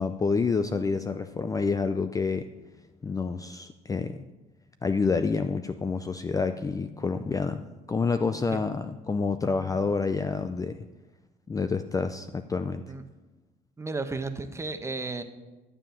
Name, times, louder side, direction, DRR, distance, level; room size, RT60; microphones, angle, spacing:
voice 1, 0.0-2.5 3.0-4.2 4.8-10.8 11.5-12.8, left 4 dB, 20° left, 9 dB, 0.5 m, -28 dB
voice 2, 13.8-15.2, right 3 dB, 15° right, 8 dB, 1.0 m, -33 dB
12.0 x 7.5 x 7.0 m, 1.1 s
cardioid pair, 110°, 17 cm